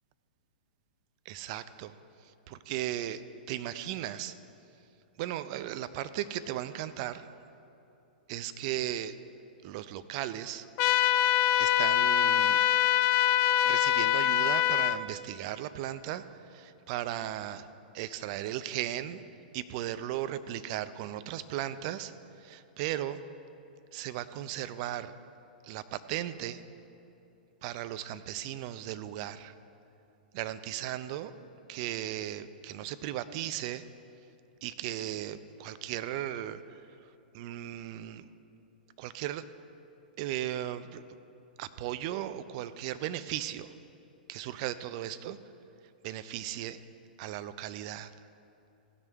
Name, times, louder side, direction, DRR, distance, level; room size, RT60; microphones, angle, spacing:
voice 1, 1.3-2.0 2.5-4.3 5.2-7.3 8.3-9.2 9.6-10.7 11.6-12.7 13.6-17.7 17.9-19.2 19.5-22.1 22.4-23.2 23.9-25.2 25.6-26.6 27.6-29.5 30.3-31.3 31.7-33.8 34.6-36.6 37.3-38.3 39.0-39.4 40.2-41.0 41.6-43.7 44.3-45.4 46.0-46.8 47.2-48.1, right 12 dB, 45° right, 13 dB, 0.5 m, -36 dB
sound 1, 10.8-15.0, left 11 dB, 40° left, 0.4 m, -24 dB
16.5 x 6.2 x 4.6 m, 2.8 s
hypercardioid pair, 110°, 5 cm